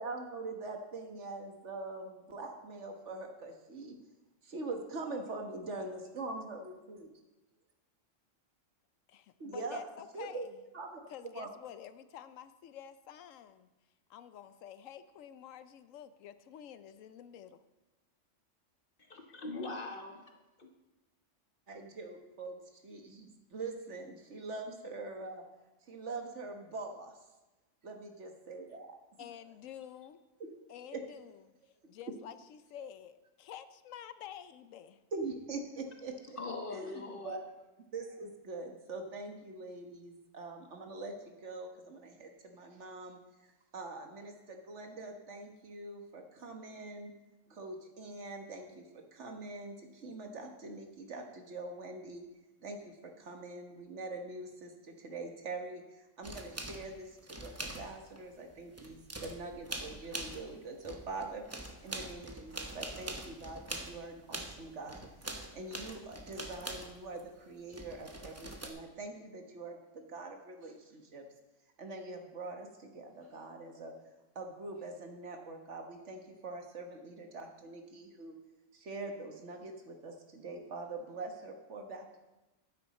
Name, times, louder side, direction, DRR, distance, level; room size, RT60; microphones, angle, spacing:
voice 1, 0.0-4.0 4.4-7.1 9.4-9.8 10.1-10.5 10.7-11.0 11.3-11.5 21.7-25.4 25.8-27.1 27.8-29.0 30.9-31.0 35.1-36.2 36.7-37.4 37.9-43.2 43.7-47.1 47.5-52.3 52.6-61.4 61.8-65.0 65.4-71.3 71.8-73.9 74.4-78.4 78.7-82.2, right 3 dB, 65° right, 4 dB, 1.6 m, -43 dB
voice 2, 9.1-10.6 11.1-13.7 14.1-17.6 29.2-30.2 30.7-31.4 31.9-35.0, left 9 dB, 90° left, 12 dB, 1.0 m, -49 dB
voice 3, 19.0-20.7 36.4-37.4, left 3 dB, 45° left, 3 dB, 1.4 m, -42 dB
sound 1, 56.2-58.2 58.5-60.6 60.8-67.2 67.7-68.7, right 1 dB, 15° right, 0.8 m, -43 dB
12.5 x 9.5 x 4.2 m, 1.0 s
omnidirectional pair, 1.3 m